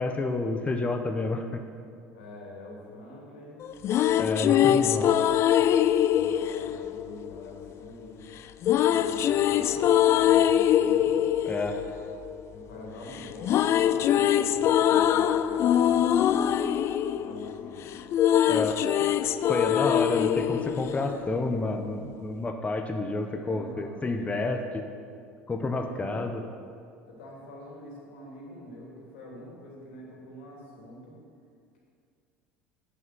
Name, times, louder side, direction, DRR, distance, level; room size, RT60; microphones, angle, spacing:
voice 1, 0.0-1.6 4.2-5.1 11.4-11.8 18.5-19.2 19.5-24.8 25.5-26.4, left 2 dB, 20° left, 5 dB, 0.9 m, -29 dB
voice 2, 2.1-3.7 4.1-5.5 6.0-8.3 8.8-11.2 12.5-16.7 17.1-17.9 23.0-24.6 25.7-26.3 27.1-31.2, left 1 dB, 75° left, -2 dB, 3.0 m, -45 dB
sound 1, 3.6-7.8 8.6-12.9 13.1-21.6, left 10 dB, 50° left, 0.4 m, -23 dB
8.5 x 7.5 x 7.9 m, 2.3 s
hypercardioid pair, 75°, 6 cm